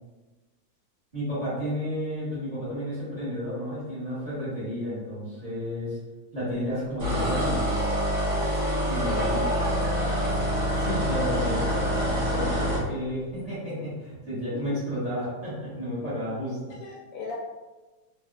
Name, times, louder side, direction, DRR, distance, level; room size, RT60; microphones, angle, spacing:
voice 1, 1.1-6.0 6.3-7.7 8.8-9.4 10.8-16.8, equal, 20° right, -11 dB, 1.5 m, -32 dB
sound 1, 7.0-12.8, equal, 50° right, 1.1 m, -26 dB
voice 2, 9.1-10.2 14.5-14.8 16.8-17.4, left 2 dB, 80° left, -2 dB, 1.2 m, -35 dB
3.2 x 2.7 x 2.3 m, 1.2 s
omnidirectional pair, 1.9 m